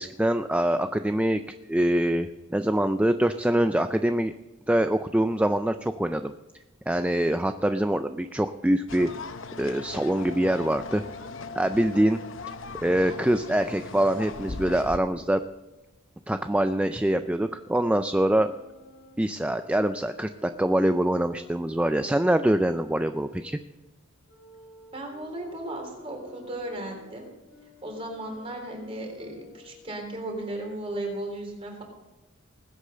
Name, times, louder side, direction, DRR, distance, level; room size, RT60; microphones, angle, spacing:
voice 1, 0.0-1.4 1.7-4.3 4.7-6.3 6.9-9.1 9.6-11.0 11.6-12.2 12.8-15.4 16.3-18.5 19.2-23.6, right 1 dB, 5° right, 9 dB, 0.4 m, -24 dB
sound 1, 8.9-15.0, left 4 dB, 65° left, 0.8 m, -39 dB
Wind instrument woodwind instrument, 17.6-23.5 24.3-30.0, equal, 80° left, 5.2 m, -51 dB
voice 2, 24.9-27.3 27.8-31.8, right 1 dB, 30° right, 1 dB, 3.7 m, -35 dB
20.0 x 8.2 x 6.7 m, 1.1 s
head